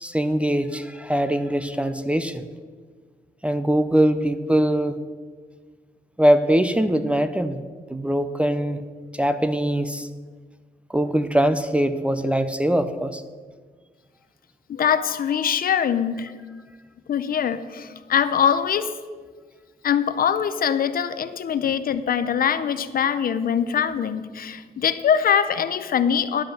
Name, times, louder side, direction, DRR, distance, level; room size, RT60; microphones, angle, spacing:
voice 1, 0.0-2.4 3.4-5.0 6.2-7.6 7.9-8.8 9.1-10.1 10.9-13.2, right 1 dB, 5° right, 10 dB, 0.4 m, -22 dB
voice 2, 14.7-16.3 17.1-18.9 19.8-26.4, left 8 dB, 60° left, 12 dB, 0.6 m, -23 dB
10.5 x 7.8 x 7.2 m, 1.5 s
wide cardioid pair, 175°, 17 cm